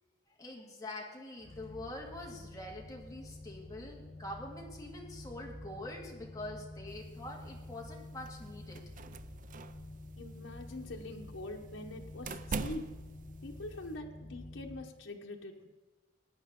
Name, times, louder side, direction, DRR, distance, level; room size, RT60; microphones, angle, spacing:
voice 1, 0.4-8.8, left 1 dB, 20° left, -1 dB, 2.0 m, -45 dB
sound 1, 1.4-14.8, left 2 dB, 40° left, 3.7 m, -49 dB
sound 2, 6.9-13.9, right 4 dB, 45° right, 0.5 m, -45 dB
voice 2, 10.2-13.0 13.4-15.7, left 1 dB, 80° left, 2 dB, 1.1 m, -44 dB
18.0 x 9.5 x 3.7 m, 1.3 s
head